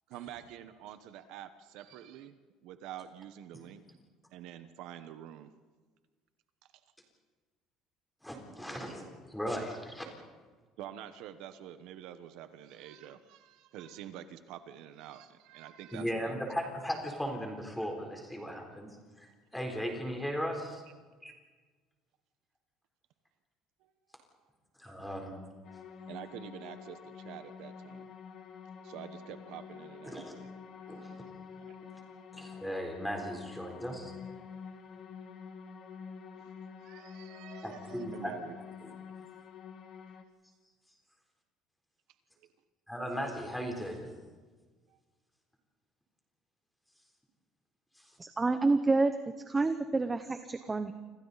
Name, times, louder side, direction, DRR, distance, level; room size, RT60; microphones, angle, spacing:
voice 1, 0.1-2.4 2.6-3.8 4.3-5.5 10.8-16.7 23.8-23.9 24.8-24.9 26.1-28.1 28.8-30.4 30.8-31.3 31.7-32.2 36.3-36.5 36.8-38.6 44.9-45.0, right 11 dB, 60° right, 10 dB, 1.2 m, -47 dB
voice 2, 8.2-10.0 15.9-18.9 19.2-19.3 19.5-20.8 21.2-21.3 24.8-25.4 30.1-30.3 30.9-31.1 32.3-34.1 37.6-38.3 38.8-38.9 42.9-44.1 48.0-48.1, equal, 5° left, 2 dB, 3.8 m, -37 dB
sound 1, 25.6-40.2, left 6 dB, 35° left, 1.8 m, -48 dB
voice 3, 48.2-49.1 49.5-50.9, right 3 dB, 10° right, 8 dB, 0.8 m, -28 dB
29.0 x 26.0 x 4.2 m, 1.4 s
cardioid pair, 175°, 0 cm